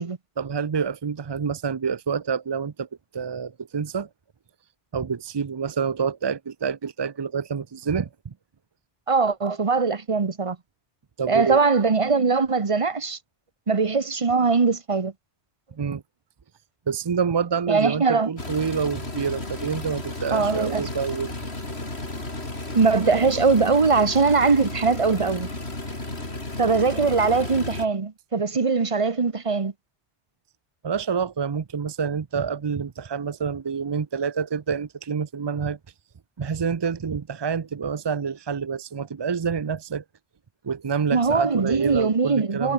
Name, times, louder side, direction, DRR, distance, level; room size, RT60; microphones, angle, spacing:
voice 1, 0.4-2.9 3.1-4.1 4.9-8.3 11.2-11.6 15.8-16.0 16.9-21.3 30.8-35.8 36.4-40.0 40.6-42.7, right 6 dB, 45° right, 0.3 m, -27 dB
voice 2, 9.1-10.6 11.3-13.2 13.7-15.1 17.7-18.3 20.3-20.9 22.7-25.5 26.6-29.7 41.1-42.7, right 4 dB, 30° right, 1.0 m, -21 dB
sound 1, 18.4-27.9, left 2 dB, 65° left, 5.0 m, -33 dB
omnidirectional pair, 1.2 m